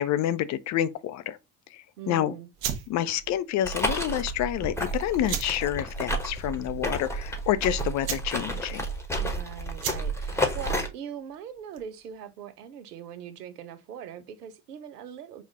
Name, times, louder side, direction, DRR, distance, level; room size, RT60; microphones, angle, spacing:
voice 1, 0.0-1.4 1.7-2.3 2.9-8.9, left 12 dB, 40° left, 0.5 m, -28 dB
voice 2, 2.0-2.5 9.2-15.4, right 9 dB, 80° right, 0.7 m, -41 dB
sound 1, 2.5-12.0, right 9 dB, 50° right, 1.1 m, -39 dB
sound 2, 3.6-10.9, right 1 dB, 5° left, 1.0 m, -31 dB
4.8 x 2.4 x 3.5 m
figure-of-eight pair, 60°, 46 cm